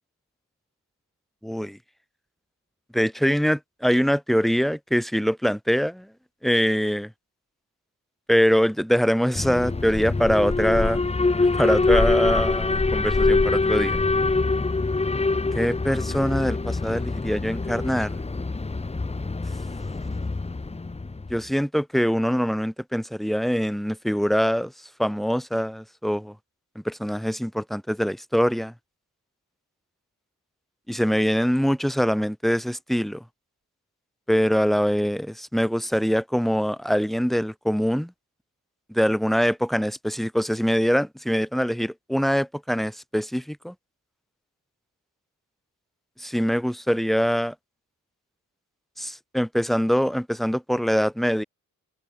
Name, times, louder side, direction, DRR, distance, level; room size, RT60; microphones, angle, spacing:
voice 1, 1.4-1.8 2.9-6.1 6.4-7.1 8.3-11.0 11.4-14.0 15.5-18.1 21.3-24.7 25.0-26.3 26.8-28.7 30.9-33.2 34.3-38.1 38.9-43.7 46.2-47.5 49.0-51.4, equal, ahead, 7.8 m, -23 dB
Alarm, 9.3-21.4, left 3 dB, 20° left, 1.4 m, -24 dB
cardioid pair, 80°, 32 cm